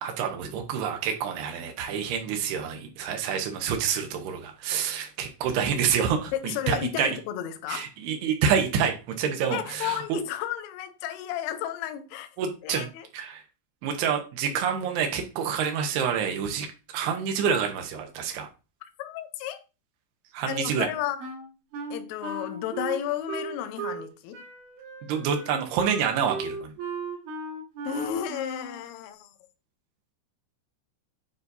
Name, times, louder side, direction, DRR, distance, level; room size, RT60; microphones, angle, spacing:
voice 1, 0.0-7.2 7.7-10.2 12.4-13.4 13.8-16.7 16.9-18.5 20.3-20.9 25.1-26.7, right 7 dB, 90° right, 2.2 m, -27 dB
voice 2, 6.3-7.9 9.5-12.3 12.6-13.1 19.0-19.6 20.5-21.2 21.9-24.4 27.9-29.3, left 10 dB, 80° left, 3.2 m, -32 dB
Wind instrument woodwind instrument, 21.2-24.1 24.3-28.8, right 4 dB, 70° right, 4.2 m, -36 dB
9.6 x 4.0 x 2.6 m
omnidirectional pair, 5.8 m